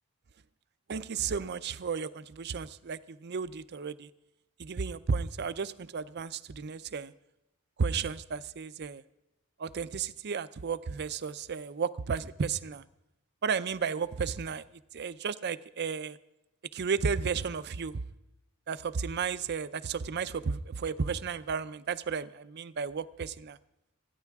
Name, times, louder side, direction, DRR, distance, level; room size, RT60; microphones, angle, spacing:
voice 1, 0.9-4.1 4.6-7.1 7.8-9.0 9.6-12.8 13.4-14.6 14.9-16.2 16.7-18.0 18.7-23.6, right 5 dB, 50° right, 14 dB, 0.5 m, -33 dB
27.0 x 10.0 x 3.5 m, 0.89 s
head